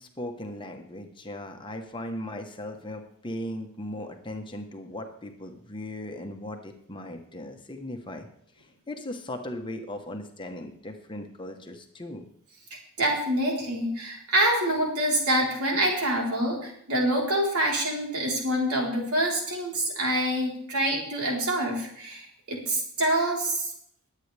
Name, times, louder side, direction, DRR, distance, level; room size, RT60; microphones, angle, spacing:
voice 1, 0.0-8.3 8.6-12.2, left 1 dB, 20° left, 4 dB, 1.2 m, -38 dB
voice 2, 13.0-23.7, right 1 dB, 90° right, -1 dB, 4.0 m, -26 dB
21.5 x 8.5 x 3.4 m, 0.68 s
head